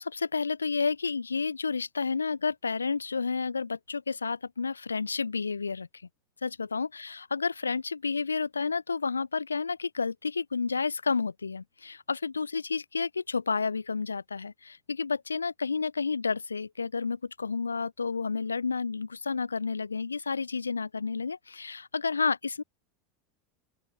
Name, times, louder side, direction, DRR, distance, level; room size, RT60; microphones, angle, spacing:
voice 1, 0.0-5.9 6.4-22.6, left 4 dB, 85° left, 5.8 m, -31 dB
open air
figure-of-eight pair, 85°, 0 cm